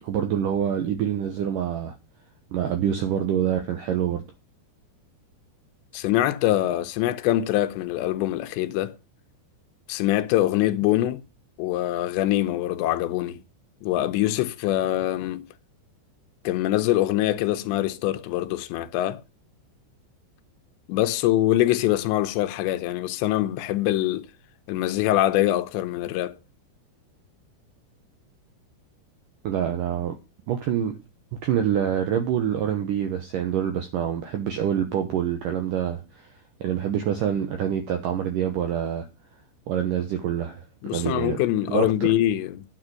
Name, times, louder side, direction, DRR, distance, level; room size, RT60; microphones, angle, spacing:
voice 1, 0.0-1.9 2.5-4.2 29.4-30.2 30.5-30.9 31.4-36.3 36.6-39.1 39.7-40.6 40.9-41.4 41.7-41.9, right 9 dB, 80° right, 1.9 m, -26 dB
voice 2, 5.9-9.0 9.9-11.2 11.6-13.4 13.8-15.5 16.4-19.2 20.9-24.3 24.7-26.4 40.8-42.6, left 14 dB, 80° left, 2.9 m, -24 dB
10.0 x 6.5 x 6.2 m
omnidirectional pair, 5.2 m